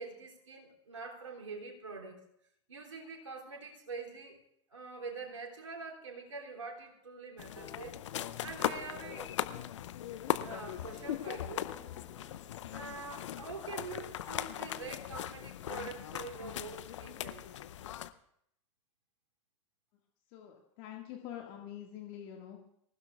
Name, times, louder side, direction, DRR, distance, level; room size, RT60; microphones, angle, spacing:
voice 1, 0.0-2.2 2.7-4.4 4.7-8.0 8.4-9.3 10.4-11.7 12.7-17.4, right 4 dB, 80° right, -1 dB, 2.9 m, -45 dB
sound 1, 7.4-18.1, left 11 dB, 70° left, 0.6 m, -39 dB
sound 2, 7.4-9.8 10.1-10.5 10.8-14.7, left 6 dB, 30° left, 2.2 m, -56 dB
voice 2, 20.3-22.6, left 10 dB, 55° left, 1 dB, 1.9 m, -46 dB
25.0 x 15.5 x 2.4 m, 0.71 s
figure-of-eight pair, 85°, 16 cm